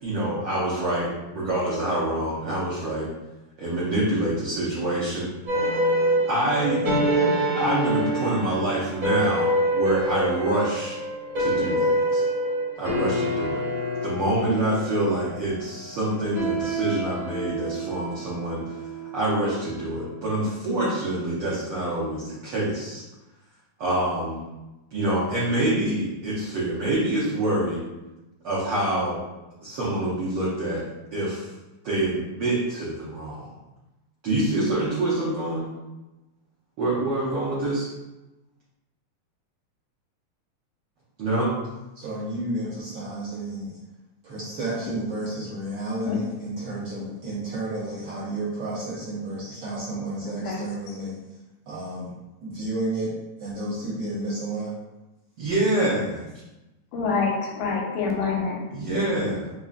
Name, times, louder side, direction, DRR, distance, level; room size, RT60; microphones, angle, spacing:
voice 1, 0.0-3.1 3.6-5.3 6.3-6.8 7.6-11.0 11.4-12.2 12.8-13.6 14.0-18.8 19.1-23.0 23.8-24.4 24.9-27.8 28.4-29.2 29.6-30.8 31.1-31.5 31.8-33.5 34.2-35.7 36.8-37.9 41.2-41.5 55.4-56.2 58.7-59.5, right 1 dB, 80° right, -8 dB, 1.2 m, -26 dB
sound 1, 5.5-20.0, right 1 dB, 35° right, 1.1 m, -26 dB
voice 2, 41.9-43.8 44.2-51.2 51.7-52.1 52.4-53.1 53.4-54.7, right 2 dB, 60° right, -11 dB, 1.5 m, -31 dB
voice 3, 56.9-58.6, left 5 dB, 85° left, -1 dB, 2.1 m, -26 dB
5.1 x 2.3 x 2.4 m, 1.0 s
omnidirectional pair, 3.5 m